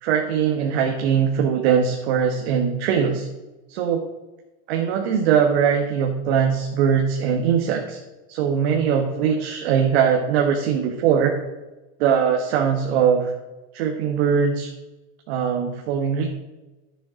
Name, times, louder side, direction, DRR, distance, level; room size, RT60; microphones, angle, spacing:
voice 1, 0.0-3.3 3.7-4.0 4.7-8.0 8.3-11.3 12.0-13.3 13.7-14.7 15.3-16.3, right 7 dB, 75° right, 2 dB, 1.4 m, -21 dB
10.5 x 6.9 x 5.0 m, 1.1 s
supercardioid pair, 130°, 32 cm